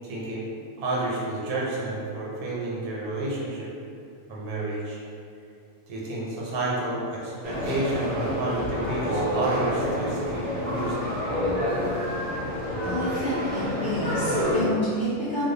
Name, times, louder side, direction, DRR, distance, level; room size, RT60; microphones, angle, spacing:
voice 1, 0.0-0.4 0.8-3.7 4.3-5.0 5.9-11.0, right 2 dB, 85° right, -5 dB, 1.1 m, -30 dB
sound 1, 7.4-14.6, left 1 dB, 40° right, 0.5 m, -28 dB
voice 2, 12.8-15.5, equal, 70° left, -12 dB, 0.4 m, -29 dB
2.3 x 2.2 x 2.6 m, 2.5 s
omnidirectional pair, 1.6 m